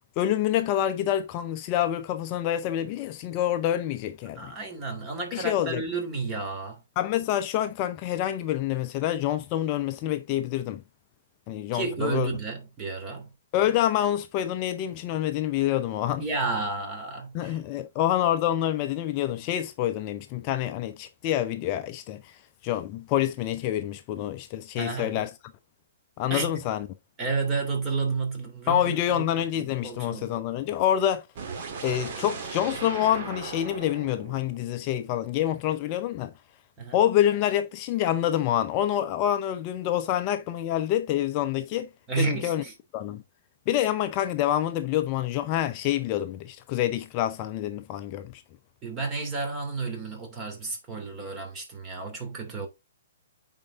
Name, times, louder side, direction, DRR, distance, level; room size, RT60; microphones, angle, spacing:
voice 1, 0.2-4.5 5.3-5.8 7.0-10.8 11.5-12.3 13.5-16.2 17.3-22.2 22.6-25.3 26.2-26.9 28.7-31.2 31.8-36.3 36.9-41.9 42.2-42.6 42.9-43.2 43.7-48.4, left 12 dB, 35° left, 0.6 m, -27 dB
voice 2, 4.3-6.8 11.7-13.3 16.2-17.6 24.8-25.2 26.3-26.5 27.2-29.2 29.5-30.4 36.8-37.0 42.1-42.7 43.7-43.9 48.8-52.7, right 4 dB, 25° right, 3.0 m, -31 dB
sound 1, 31.3-35.3, right 5 dB, 45° right, 2.0 m, -38 dB
8.6 x 4.5 x 3.7 m
figure-of-eight pair, 120°, 0 cm